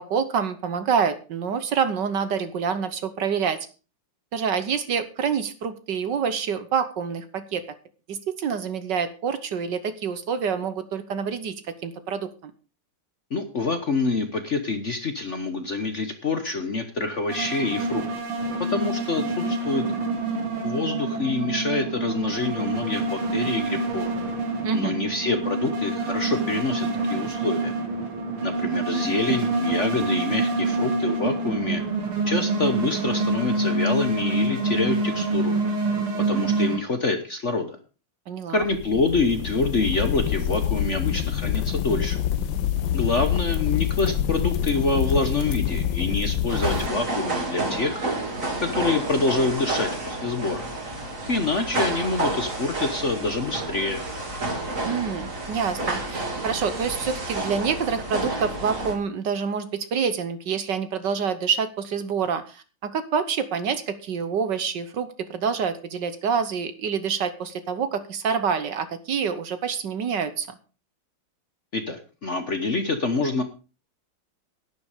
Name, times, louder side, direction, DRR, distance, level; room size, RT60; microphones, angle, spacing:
voice 1, 0.0-3.6 4.3-7.6 8.1-11.6 11.8-12.5 24.6-25.0 38.3-38.6 54.8-70.6, right 6 dB, 60° right, 11 dB, 1.5 m, -27 dB
voice 2, 13.3-18.1 18.7-19.8 20.6-24.1 24.7-27.7 28.4-31.8 32.2-35.6 36.3-37.8 38.5-42.2 42.9-48.0 48.6-50.7 51.3-54.0 71.7-73.4, left 3 dB, 40° left, 7 dB, 1.1 m, -26 dB
sound 1, 17.3-36.8, right 3 dB, 80° right, 3.0 m, -26 dB
sound 2, 38.6-46.9, left 9 dB, 70° left, 1.6 m, -26 dB
sound 3, 46.5-58.9, right 2 dB, 35° right, 3.2 m, -30 dB
11.0 x 10.5 x 5.0 m, 0.34 s
omnidirectional pair, 2.4 m